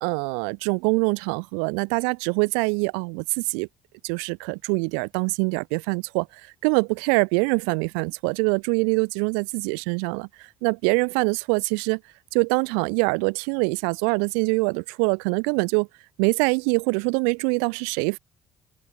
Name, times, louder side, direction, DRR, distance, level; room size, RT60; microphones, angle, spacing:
voice 1, 0.0-3.7 4.0-12.0 12.3-15.9 16.2-18.2, right 40 dB or more, 85° right, 2.5 m, -24 dB
open air
hypercardioid pair, 60°, 3 cm